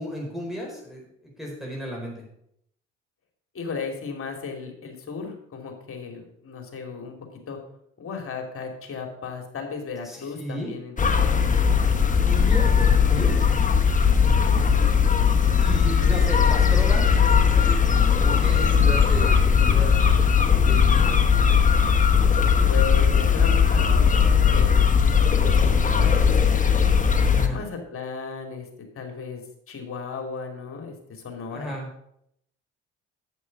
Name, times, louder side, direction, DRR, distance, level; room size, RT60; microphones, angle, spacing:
voice 1, 0.0-2.2 10.0-10.7 12.2-13.4 15.6-17.2 17.6-21.2 27.2-27.6 31.5-31.9, equal, ahead, -3 dB, 4.6 m, -34 dB
voice 2, 3.5-7.1 7.5-7.6 8.0-11.5 14.4-14.9 22.7-26.8 27.5-28.7 28.9-29.4 29.7-31.8, left 5 dB, 45° left, 4 dB, 2.9 m, -35 dB
sound 1, 11.0-27.5, left 6 dB, 25° left, 1.3 m, -19 dB
8.2 x 7.7 x 6.0 m, 0.73 s
hypercardioid pair, 65°, 30 cm